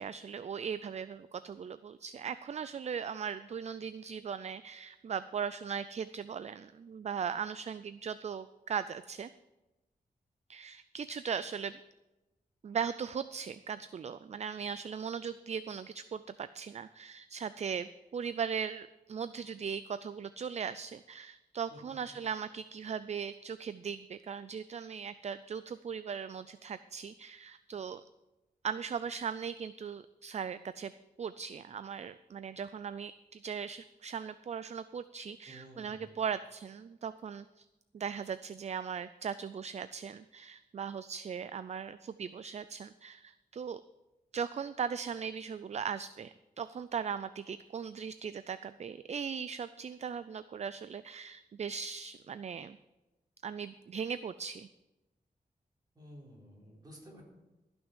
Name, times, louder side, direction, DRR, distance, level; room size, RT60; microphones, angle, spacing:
voice 1, 0.0-9.3 10.5-11.7 12.6-28.0 28.6-30.9 31.2-37.7 37.9-43.8 44.3-52.8 53.4-54.7, right 7 dB, 45° right, 14 dB, 0.4 m, -38 dB
voice 2, 21.7-22.3 35.5-36.2 55.9-57.2, equal, 25° right, -3 dB, 4.2 m, -53 dB
14.5 x 6.2 x 7.3 m, 1.0 s
wide cardioid pair, 120°, 16 cm